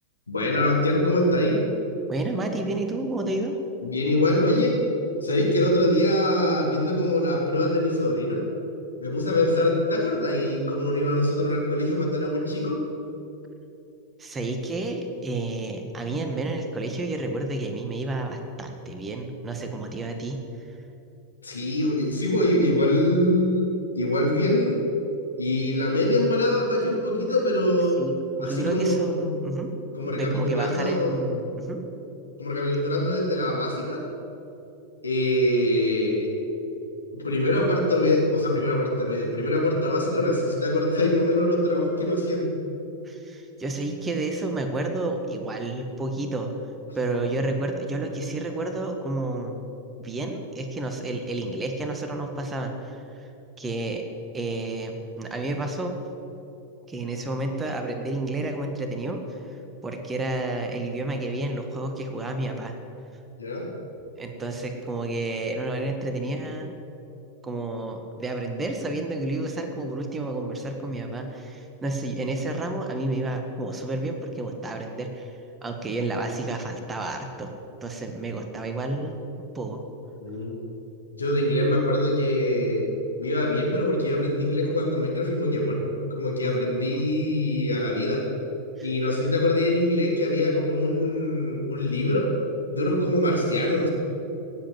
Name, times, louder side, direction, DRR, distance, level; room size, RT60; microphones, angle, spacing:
voice 1, 0.3-1.6 3.8-4.8 5.2-8.5 9.0-12.8 21.4-23.7 23.9-24.9 25.4-28.0 28.4-29.3 29.9-31.4 32.4-34.0 35.0-36.3 37.1-42.5 63.4-63.7 80.2-80.5 81.1-82.8 83.2-85.8 86.1-88.2 88.8-92.3 92.7-93.9, left 1 dB, 80° left, -2 dB, 3.4 m, -23 dB
voice 2, 2.1-3.6 14.2-20.4 28.0-29.8 30.0-31.9 43.0-46.5 46.9-49.6 50.0-53.3 53.6-54.1 54.3-55.9 56.9-59.4 59.8-62.7 64.2-66.7 67.4-75.3 75.6-77.5 77.8-79.8 86.4-87.1 88.8-88.9, right 2 dB, 15° right, 5 dB, 1.7 m, -30 dB
17.5 x 7.9 x 7.9 m, 2.9 s
figure-of-eight pair, 90°, 0 cm